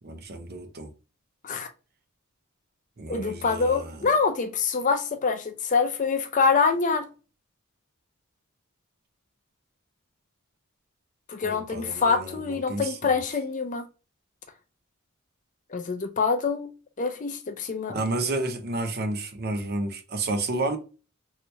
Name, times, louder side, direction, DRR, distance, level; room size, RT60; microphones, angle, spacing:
voice 1, 0.0-0.9 3.0-4.0 11.4-13.0 17.9-20.8, right 2 dB, 50° right, 0.7 m, -31 dB
voice 2, 3.1-7.1 11.3-13.8 15.7-16.7 17.0-18.0, left 5 dB, 35° left, 0.5 m, -25 dB
3.2 x 2.9 x 2.7 m
head